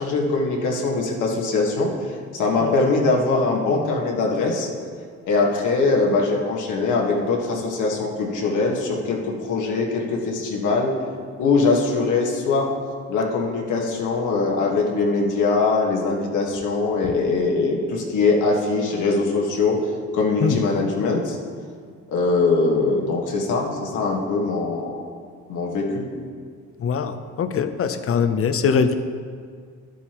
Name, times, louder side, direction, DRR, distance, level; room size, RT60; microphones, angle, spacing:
voice 1, 0.0-4.7 5.2-10.9 11.4-12.7 13.1-19.8 20.1-21.4 22.1-25.0 25.5-26.1, left 3 dB, 80° left, 0 dB, 1.6 m, -22 dB
voice 2, 26.8-28.9, left 6 dB, 50° left, 10 dB, 0.7 m, -22 dB
11.5 x 8.2 x 3.0 m, 2.1 s
cardioid pair, 90°, 30 cm